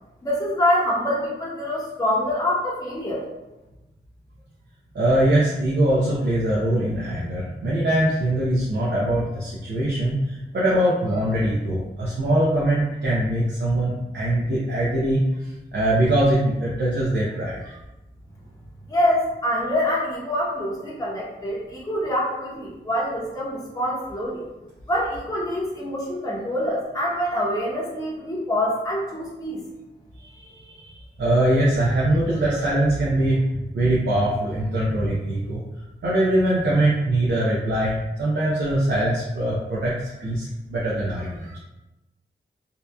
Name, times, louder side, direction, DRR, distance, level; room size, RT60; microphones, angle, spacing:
voice 1, 0.2-3.2 18.9-24.4 24.9-29.6, left 1 dB, 20° left, -6 dB, 0.7 m, -25 dB
voice 2, 4.9-15.2 15.7-17.8 30.2-30.9 31.2-33.4 33.7-35.6 36.0-39.9 40.2-41.6, right 1 dB, 70° right, -7 dB, 0.5 m, -22 dB
2.7 x 2.3 x 2.2 m, 1.0 s
cardioid pair, 60°, 19 cm